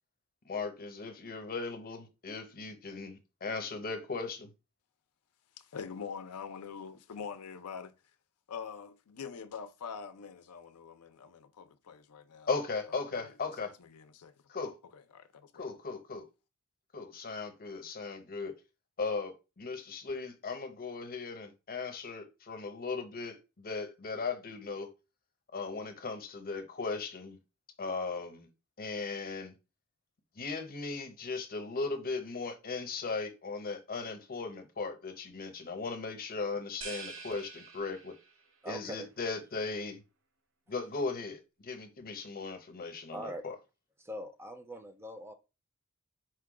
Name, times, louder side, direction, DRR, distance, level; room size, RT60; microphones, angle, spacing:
voice 1, 0.4-4.5 12.5-13.7 14.5-14.8 15.5-16.2 16.9-18.5 19.0-24.9 25.5-27.4 27.8-28.5 28.8-29.5 30.4-38.1 38.7-40.0 40.7-43.6, left 4 dB, 40° left, 0.8 m, -37 dB
voice 2, 5.6-7.9 8.5-12.5 12.9-13.2 13.6-14.3 14.9-15.7, left 6 dB, 85° left, 0.5 m, -44 dB
sound 1, 36.8-38.5, right 4 dB, 60° right, 0.9 m, -46 dB
voice 3, 38.6-39.1 43.1-43.4 44.0-45.3, equal, 10° right, 0.5 m, -42 dB
4.5 x 2.2 x 4.7 m
head